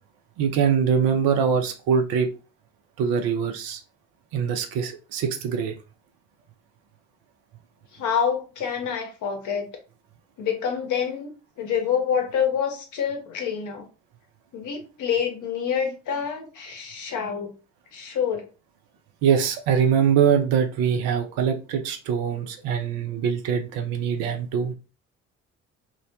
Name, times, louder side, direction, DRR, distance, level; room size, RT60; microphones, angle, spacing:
voice 1, 0.4-2.3 3.0-3.8 4.3-5.8 19.2-24.7, right 7 dB, 70° right, 0.6 m, -23 dB
voice 2, 7.9-9.6 10.4-11.3 11.6-13.9 14.5-17.5 17.9-18.5, left 7 dB, 60° left, 0.8 m, -27 dB
2.3 x 2.1 x 2.7 m
hypercardioid pair, 45°, 36 cm